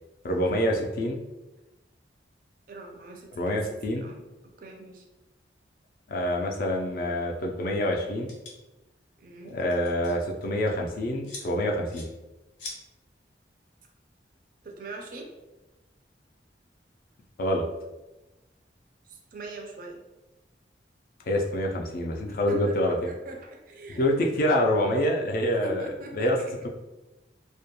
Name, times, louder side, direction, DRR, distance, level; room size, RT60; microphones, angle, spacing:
voice 1, 0.2-1.2 3.4-4.1 6.1-8.3 9.5-12.1 17.4-17.6 21.2-23.1 24.0-26.4, left 1 dB, 50° left, 1 dB, 0.3 m, -26 dB
voice 2, 2.7-3.5 3.9-4.2 4.6-5.1 9.2-9.6 14.6-15.3 19.0-20.0 22.3-24.0 25.6-26.3, right 2 dB, 45° right, 2 dB, 0.4 m, -43 dB
sound 1, 8.3-8.5 9.5-10.2 10.4-10.7 11.2-11.5 11.9-12.1 12.6-12.8, left 3 dB, 85° left, 0.7 m, -40 dB
2.2 x 2.2 x 2.8 m, 1.1 s
head